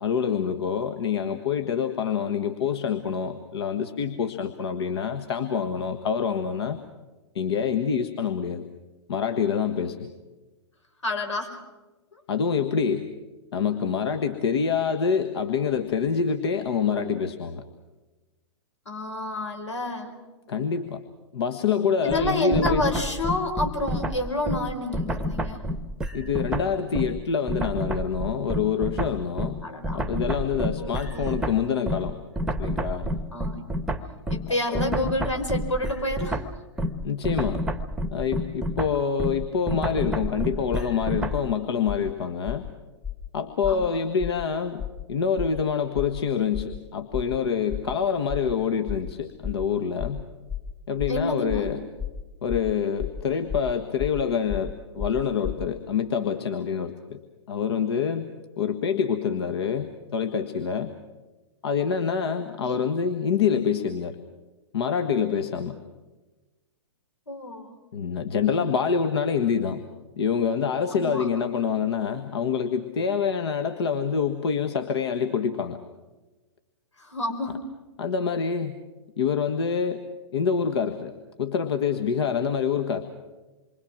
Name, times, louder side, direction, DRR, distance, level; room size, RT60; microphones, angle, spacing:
voice 1, 0.0-6.8 7.3-8.7 9.1-10.1 12.3-13.1 13.5-17.6 20.5-21.0 21.3-22.9 26.1-29.6 29.9-32.2 32.6-33.1 34.7-34.8 37.0-37.6 38.1-42.6 43.3-44.8 45.1-50.3 50.9-51.9 52.4-57.2 57.5-58.3 58.6-60.9 61.6-64.2 64.7-65.8 67.9-69.8 70.2-75.8 78.0-78.8 79.2-80.0 80.3-81.1 81.4-83.1, left 6 dB, 60° left, 7 dB, 1.5 m, -26 dB
voice 2, 11.0-11.6 18.9-20.1 22.0-25.6 29.6-30.0 30.8-31.4 33.3-33.6 34.3-36.4 43.7-43.9 51.1-51.7 62.6-62.8 67.3-67.8 70.9-71.5 77.0-77.6, left 1 dB, 80° left, 4 dB, 4.4 m, -29 dB
sound 1, 22.1-27.2 27.5-41.5, equal, 5° right, 1.0 m, -29 dB
sound 2, 40.7-40.9 41.3-41.5 41.9-42.1 42.4-42.7 43.0-43.3 43.6-43.9 44.2-44.4 44.8-45.0 45.4-45.6 45.9-46.2 46.5-46.8 47.1-47.4 47.7-47.9 48.3-48.5 48.9-49.1 49.4-49.7 50.0-50.2 50.5-50.7 51.0-51.2 51.5-51.7 52.0-52.2 52.5-52.7 53.0-53.2 53.5-53.7 54.0-54.2 54.5-54.7 55.0-55.7, left 8 dB, 20° left, 1.9 m, -33 dB
27.5 x 24.0 x 6.1 m, 1.2 s
figure-of-eight pair, 110°, 15 cm